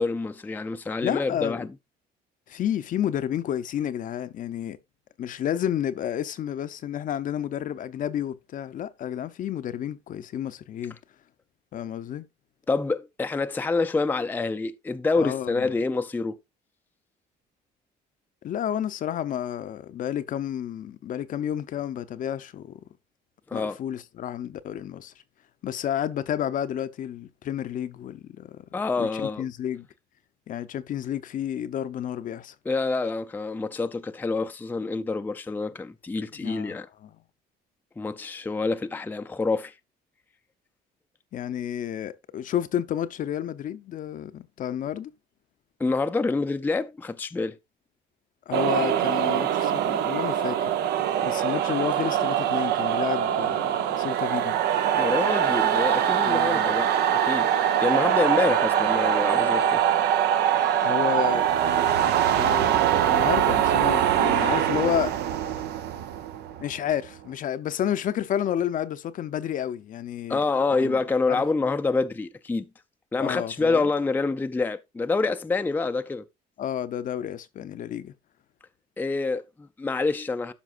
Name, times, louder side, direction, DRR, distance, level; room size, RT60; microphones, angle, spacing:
voice 1, 0.0-1.7 12.7-16.4 23.5-23.8 28.7-29.5 32.6-36.9 38.0-39.7 45.8-47.6 54.9-57.5 57.8-59.8 70.3-72.7 73.1-76.2 79.0-80.5, left 3 dB, 10° left, 0.4 m, -27 dB
voice 2, 1.0-1.7 2.5-4.8 5.2-11.0 11.7-12.3 15.2-15.7 18.4-22.8 23.5-25.1 25.6-28.6 29.0-29.9 30.5-32.5 36.4-37.1 41.3-45.1 48.5-50.7 51.2-54.6 56.2-56.7 60.8-61.5 62.3-65.1 66.6-70.4 70.8-71.0 71.3-71.4 73.2-73.9 76.6-78.1, left 10 dB, 50° left, 0.6 m, -31 dB
sound 1, 48.5-67.1, right 10 dB, 75° right, 0.7 m, -23 dB
12.5 x 5.2 x 2.4 m
cardioid pair, 110°, 17 cm